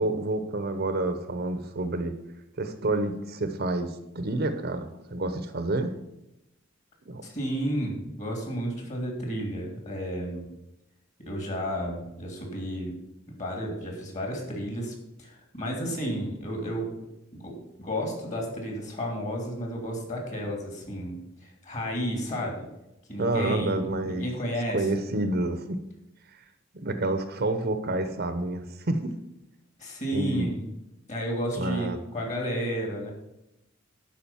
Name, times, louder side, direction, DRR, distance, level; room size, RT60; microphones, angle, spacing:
voice 1, 0.0-2.1 2.6-5.9 7.0-7.2 23.2-24.3 24.7-25.8 26.4-26.5 26.7-29.1 30.1-30.5 31.5-32.0, right 2 dB, 50° right, 9 dB, 0.9 m, -29 dB
voice 2, 7.2-10.4 11.3-13.0 13.4-16.9 17.3-22.6 23.1-24.9 29.8-30.7 31.1-33.1, equal, 35° left, 1 dB, 3.0 m, -32 dB
11.5 x 5.0 x 7.1 m, 0.89 s
head